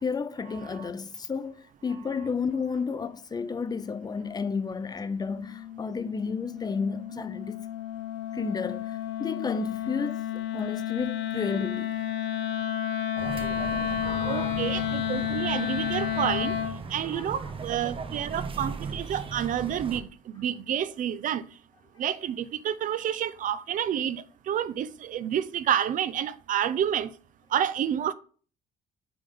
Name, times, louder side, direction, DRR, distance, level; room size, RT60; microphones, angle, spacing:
voice 1, 0.0-1.5 1.8-7.6 8.3-11.9 14.0-14.6 17.1-17.3, left 5 dB, 25° left, 0.5 m, -32 dB
Wind instrument woodwind instrument, 5.3-16.8, left 10 dB, 85° left, 0.7 m, -31 dB
sound 1, 13.2-20.0, right 5 dB, 30° right, 0.8 m, -38 dB
voice 2, 14.3-16.5 16.9-20.1 20.4-21.4 22.0-27.1 27.5-28.1, right 9 dB, 50° right, 0.5 m, -29 dB
6.8 x 3.5 x 5.4 m
cardioid pair, 110°, 17 cm